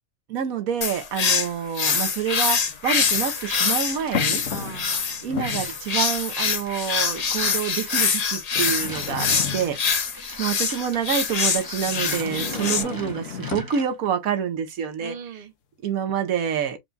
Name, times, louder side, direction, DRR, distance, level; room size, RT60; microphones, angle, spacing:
voice 1, 0.3-4.4 5.2-9.8 10.4-15.1 15.8-16.8, right 8 dB, 85° right, 1.3 m, -27 dB
sound 1, 0.8-12.8, left 6 dB, 45° left, 0.5 m, -25 dB
sound 2, 1.1-1.2 2.6-3.3 4.1-5.0 5.2-5.8 6.6-6.7 7.5-7.6 8.6-10.0 11.9-13.8, left 7 dB, 65° left, 1.1 m, -33 dB
sound 3, 2.9-4.4 4.9-14.1, right 2 dB, 25° right, 0.5 m, -42 dB
voice 2, 4.5-5.3 9.2-9.7 12.4-12.7 15.0-15.5, right 8 dB, 45° right, 0.9 m, -40 dB
4.7 x 2.3 x 3.9 m
omnidirectional pair, 1.4 m